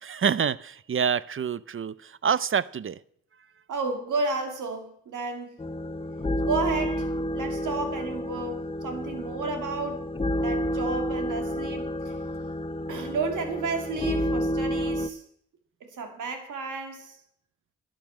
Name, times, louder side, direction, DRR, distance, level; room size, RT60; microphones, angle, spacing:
voice 1, 0.0-3.0, right 7 dB, 45° right, 20 dB, 0.6 m, -27 dB
voice 2, 3.7-5.6 6.4-10.1 10.4-12.1 12.9-15.2 15.8-17.2, right 4 dB, 90° right, 5 dB, 2.3 m, -32 dB
sound 1, 5.6-15.1, equal, 20° left, 0.8 m, -30 dB
11.5 x 9.6 x 7.3 m, 0.65 s
cardioid pair, 55°, 30 cm